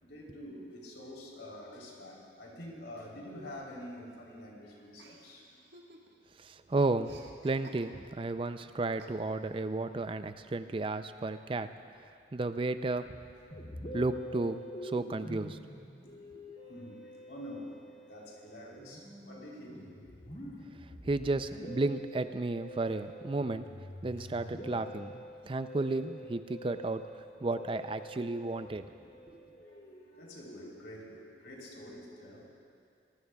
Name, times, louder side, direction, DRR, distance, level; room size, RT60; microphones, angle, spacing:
voice 1, 0.0-5.6 16.3-20.3 24.2-24.3 28.6-32.5, left 1 dB, 85° left, -3 dB, 3.6 m, -48 dB
Chuckle chortle, 5.0-6.4 6.6-8.3 9.0-9.6, right 2 dB, 85° right, 1.6 m, -56 dB
voice 2, 6.4-11.7 12.3-13.2 13.9-15.6 21.0-23.7 24.0-27.1 27.4-28.8 29.3-29.4, right 2 dB, 30° right, 10 dB, 0.4 m, -33 dB
Musical instrument, 13.5-31.1, left 1 dB, 45° left, 2.6 m, -47 dB
24.0 x 19.0 x 2.4 m, 2.4 s
head